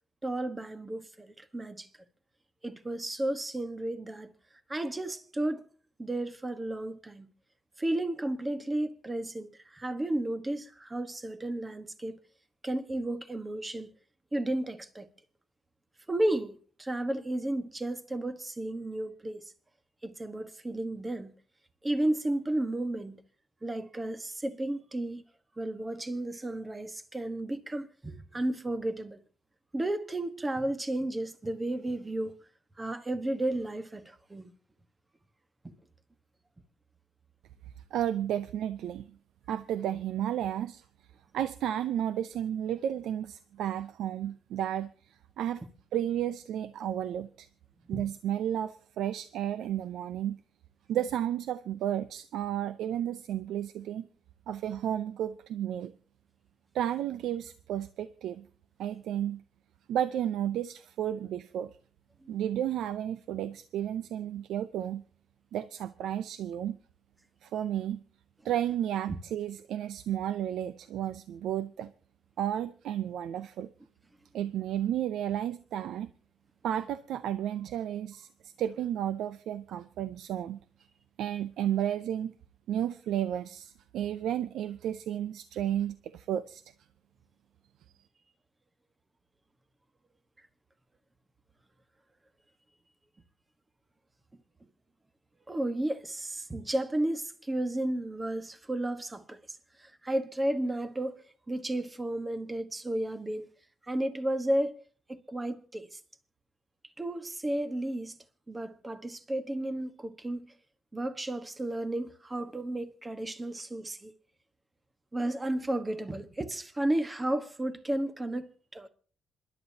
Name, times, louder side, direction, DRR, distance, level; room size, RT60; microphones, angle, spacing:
voice 1, 0.2-1.9 2.6-4.3 4.7-5.6 6.0-7.3 7.8-12.2 12.6-13.9 14.3-15.1 16.1-19.4 20.0-21.3 21.8-23.2 23.6-25.2 25.6-29.2 29.7-32.3 32.8-34.5 35.6-35.7 47.9-48.0 62.2-62.3 95.5-101.2 101.5-103.5 103.9-104.8 105.1-106.0 107.0-108.2 108.5-110.5 110.9-114.1 115.1-118.9, right 1 dB, 20° right, 1.3 m, -33 dB
voice 2, 37.9-39.2 39.5-40.8 41.3-45.6 45.9-47.5 47.9-50.4 50.9-54.1 54.5-55.9 56.7-58.5 58.8-59.4 59.9-61.7 62.3-65.0 65.5-66.8 67.4-68.0 68.4-71.9 72.4-73.7 74.3-76.1 76.6-80.6 81.2-82.3 82.7-86.6, right 10 dB, 80° right, 0.5 m, -32 dB
27.0 x 11.5 x 2.8 m
cardioid pair, 90°, 0 cm